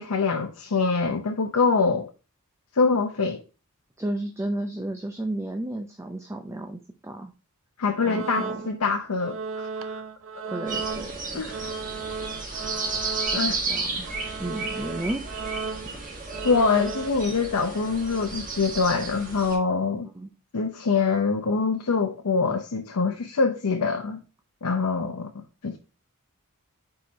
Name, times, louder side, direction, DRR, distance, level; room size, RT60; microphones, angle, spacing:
voice 1, 0.0-2.1 2.7-3.4 7.8-9.4 9.8-10.0 11.3-11.7 13.3-13.6 16.4-20.1 20.5-24.2 24.6-25.8, left 4 dB, 75° left, 0.7 m, -24 dB
voice 2, 4.0-7.3 8.0-8.6 10.5-11.5 13.3-14.1 14.4-15.2 20.1-20.3, right 1 dB, 15° right, 0.5 m, -33 dB
sound 1, 7.9-8.9 9.2-13.7 14.0-17.1, right 5 dB, 65° right, 0.6 m, -35 dB
sound 2, 10.7-19.6, right 3 dB, 35° right, 1.9 m, -33 dB
4.8 x 4.4 x 5.0 m
head